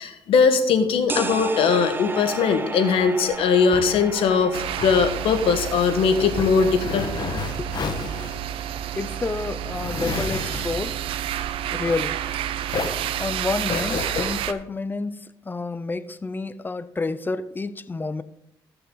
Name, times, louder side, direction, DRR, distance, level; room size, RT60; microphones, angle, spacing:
voice 1, 0.0-7.3, left 5 dB, 80° left, 1.4 m, -20 dB
sound 1, 1.1-6.7, right 3 dB, 25° right, 0.8 m, -33 dB
sound 2, 3.3-12.4 12.7-14.3, left 5 dB, 50° left, 1.4 m, -32 dB
sound 3, 4.5-14.5, right 11 dB, 80° right, 0.6 m, -30 dB
voice 2, 9.0-11.0 11.7-12.2 13.2-18.2, left 3 dB, 20° left, 0.5 m, -29 dB
14.5 x 6.7 x 3.9 m
cardioid pair, 85°, 9 cm